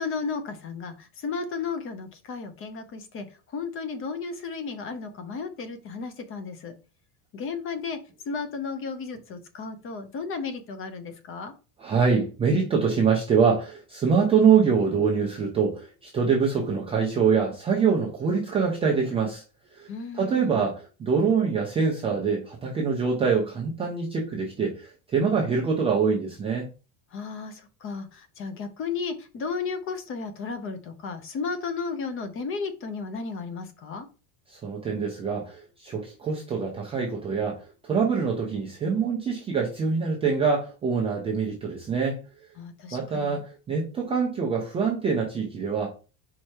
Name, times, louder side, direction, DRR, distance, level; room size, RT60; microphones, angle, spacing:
voice 1, 0.0-3.3 3.5-6.7 7.3-8.0 8.3-11.5 19.9-20.6 27.1-34.1 42.6-43.4, left 5 dB, 25° left, 0.6 m, -34 dB
voice 2, 11.8-19.4 19.7-19.9 20.1-26.7 34.5-42.2 42.9-45.9, right 5 dB, 15° right, 0.3 m, -24 dB
4.8 x 4.5 x 4.4 m
cardioid pair, 180°, 50 cm